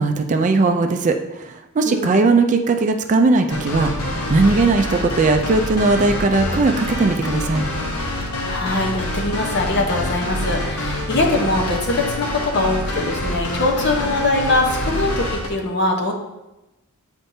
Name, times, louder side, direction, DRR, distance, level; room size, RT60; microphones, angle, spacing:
voice 1, 0.0-7.7, right 3 dB, 35° right, 6 dB, 0.4 m, -18 dB
voice 2, 1.8-2.2 8.4-16.1, left 2 dB, 50° left, 1 dB, 0.9 m, -22 dB
sound 1, 3.5-15.5, left 1 dB, 85° left, 0.9 m, -26 dB
8.0 x 4.4 x 2.7 m, 0.98 s
head